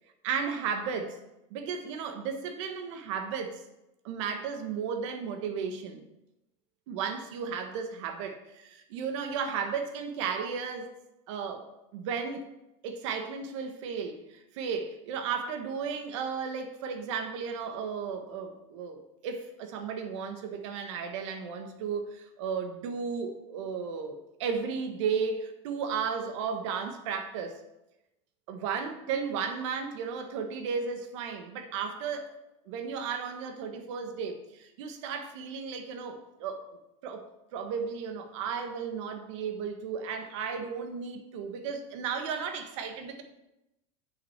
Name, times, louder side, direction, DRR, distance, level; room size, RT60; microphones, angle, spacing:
voice 1, 0.2-1.2 1.5-3.6 4.0-6.0 6.9-10.9 11.3-11.6 11.9-12.5 12.8-27.6 28.5-32.3 32.7-36.6 37.0-43.2, right 6 dB, 70° right, 6 dB, 1.4 m, -34 dB
7.9 x 6.1 x 5.7 m, 0.91 s
supercardioid pair, 145°, 16 cm